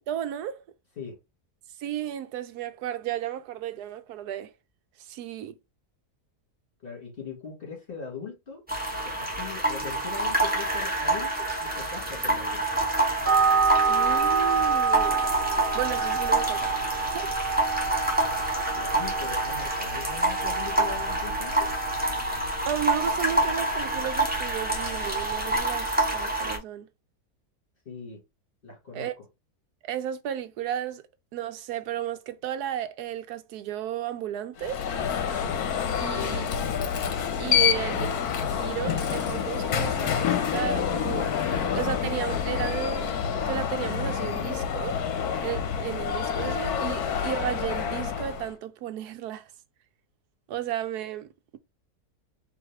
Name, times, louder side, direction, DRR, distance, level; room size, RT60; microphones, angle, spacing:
voice 1, 0.1-0.6 1.8-4.5 5.0-5.5 13.9-15.2 15.7-17.3 22.7-26.9 28.9-29.1 29.8-31.0 31.3-34.9 35.9-36.4 37.4-38.2 38.4-41.3 41.7-43.1 43.5-45.0 45.4-49.4 50.5-51.3, right 10 dB, 85° right, 1.2 m, -33 dB
voice 2, 6.8-8.6 9.0-12.7 18.7-21.7 27.8-28.2 28.6-29.2 36.0-36.8 37.6-38.1, left 6 dB, 35° left, 2.6 m, -40 dB
sound 1, 8.7-26.6, right 2 dB, 5° right, 1.4 m, -27 dB
sound 2, 13.2-25.6, right 5 dB, 30° right, 1.7 m, -29 dB
Alarm, 34.6-48.5, left 8 dB, 75° left, 1.3 m, -28 dB
4.8 x 3.0 x 3.5 m
omnidirectional pair, 1.6 m